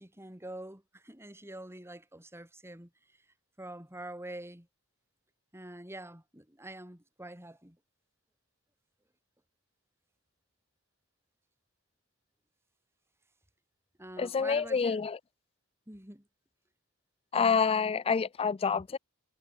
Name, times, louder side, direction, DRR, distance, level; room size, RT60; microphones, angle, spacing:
voice 1, 0.0-2.9 3.6-4.7 5.5-7.8 14.0-15.1 15.9-16.2, right 1 dB, 10° right, 6.7 m, -45 dB
voice 2, 14.2-15.2 17.3-19.0, left 5 dB, 25° left, 0.4 m, -27 dB
head